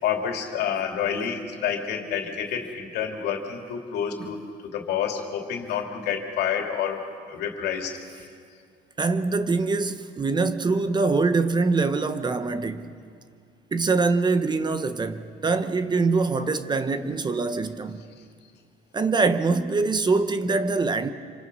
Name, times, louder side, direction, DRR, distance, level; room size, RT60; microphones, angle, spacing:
voice 1, 0.0-8.3, left 8 dB, 75° left, 2.7 m, -29 dB
voice 2, 9.0-12.9 13.7-18.0 18.9-21.1, right 4 dB, 25° right, 1.0 m, -24 dB
26.5 x 25.5 x 5.4 m
cardioid pair, 110°, 17 cm